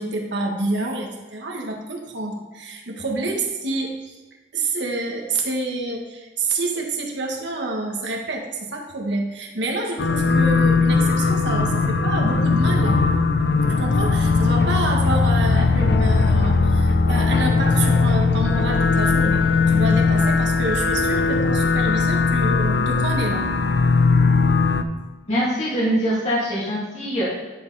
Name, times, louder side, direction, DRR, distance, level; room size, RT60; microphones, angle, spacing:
voice 1, 0.0-4.2 4.5-13.0 13.8-23.5, right 2 dB, 70° right, 1 dB, 1.5 m, -28 dB
sound 1, 10.0-24.8, left 4 dB, 60° left, 0.5 m, -19 dB
voice 2, 25.3-27.2, equal, 35° left, -8 dB, 2.4 m, -23 dB
10.5 x 5.2 x 4.1 m, 1.3 s
head